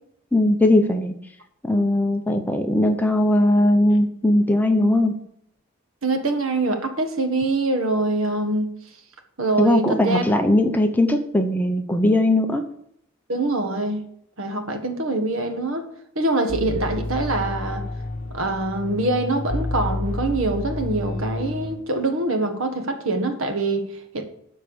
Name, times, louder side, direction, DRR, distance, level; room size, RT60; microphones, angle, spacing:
voice 1, 0.3-1.2 1.6-5.2 9.6-12.6, left 1 dB, 10° left, 0.7 m, -19 dB
voice 2, 6.0-8.7 9.4-10.2 13.3-14.1 14.4-15.9 16.1-17.8 18.3-24.2, right 2 dB, 70° right, 1.5 m, -24 dB
sound 1, 16.5-21.8, left 2 dB, 40° left, 1.1 m, -30 dB
12.5 x 4.6 x 7.1 m
head